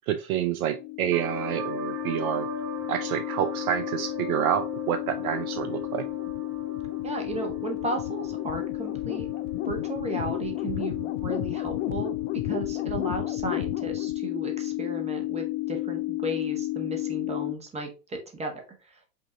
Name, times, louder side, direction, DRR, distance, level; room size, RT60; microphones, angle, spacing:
voice 1, 0.1-2.5 2.9-6.1, right 10 dB, 60° right, 11 dB, 0.5 m, -28 dB
sound 1, 0.6-17.5, left 16 dB, 45° left, 0.5 m, -32 dB
sound 2, 1.1-12.4, right 2 dB, 35° right, 1.2 m, -41 dB
voice 2, 7.0-9.3 9.6-12.1 12.4-18.6 18.9-19.0, right 2 dB, 15° right, 3 dB, 1.1 m, -35 dB
5.5 x 2.7 x 3.5 m, 0.33 s
hypercardioid pair, 95°, 49 cm